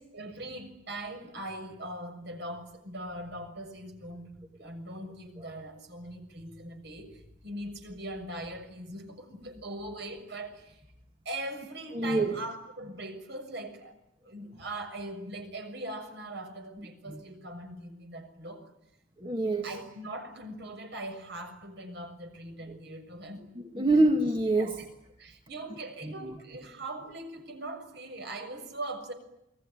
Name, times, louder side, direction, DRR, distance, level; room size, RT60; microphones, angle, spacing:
voice 1, 0.1-10.8 11.2-14.0 14.2-18.7 19.6-23.4 24.6-24.8 25.2-29.1, right 1 dB, 55° right, 6 dB, 6.6 m, -41 dB
voice 2, 11.9-12.4 17.1-17.2 19.2-19.7 23.7-24.8 26.0-26.1, right 2 dB, 25° right, 3 dB, 2.2 m, -25 dB
28.5 x 22.0 x 9.3 m, 0.83 s
head